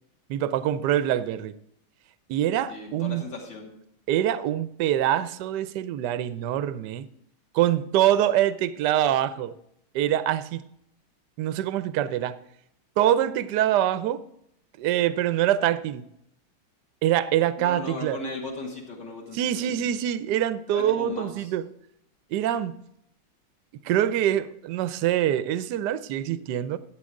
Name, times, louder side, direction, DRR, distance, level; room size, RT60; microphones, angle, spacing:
voice 1, 0.3-1.5 2.3-3.2 4.1-7.1 7.5-9.6 9.9-10.6 11.4-12.4 13.0-14.2 14.8-16.0 17.0-18.2 19.4-21.6 22.3-22.7 23.8-26.8, right 11 dB, 70° right, 14 dB, 1.0 m, -24 dB
voice 2, 2.7-3.7 17.6-19.9 20.7-21.5, left 2 dB, 55° left, -2 dB, 3.2 m, -37 dB
14.0 x 8.7 x 3.7 m, 0.74 s
omnidirectional pair, 2.4 m